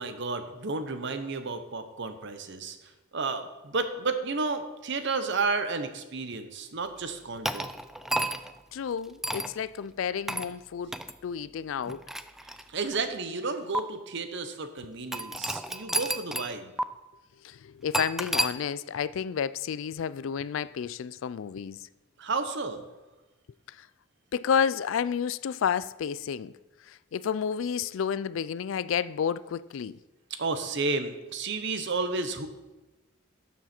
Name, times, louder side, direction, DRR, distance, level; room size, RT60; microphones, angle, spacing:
voice 1, 0.0-7.7 12.4-16.7 22.2-22.9 30.3-32.5, right 3 dB, 60° right, 0.9 m, -32 dB
sound 1, 7.4-8.6 9.2-9.5 10.3-10.5 10.9-11.1 11.8-13.0 13.7-13.8 15.1-16.5 16.8-16.9 17.9-18.5, right 1 dB, ahead, 0.3 m, -31 dB
voice 2, 8.7-10.9 11.2-12.1 17.4-21.8 23.8-23.9 24.3-26.5 26.9-30.0, left 7 dB, 70° left, 0.4 m, -30 dB
12.5 x 7.2 x 4.4 m
head